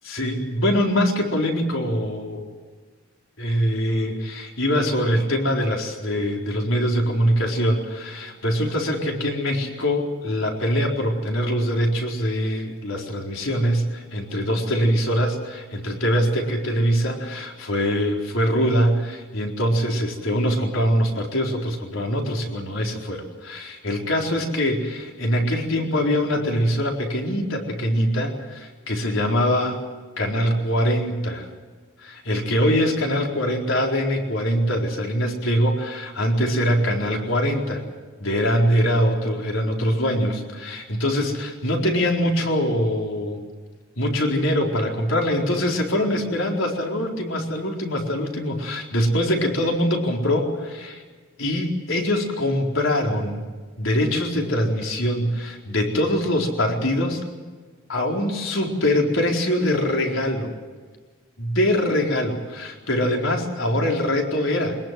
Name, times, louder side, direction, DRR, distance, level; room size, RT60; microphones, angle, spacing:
voice 1, 0.1-2.4 3.4-29.8 30.2-31.5 32.0-37.8 38.2-43.4 44.0-51.0 51.4-53.4 53.8-57.3 57.9-60.5 61.4-64.8, equal, 80° left, 1 dB, 4.3 m, -23 dB
23.0 x 21.0 x 7.6 m, 1.4 s
head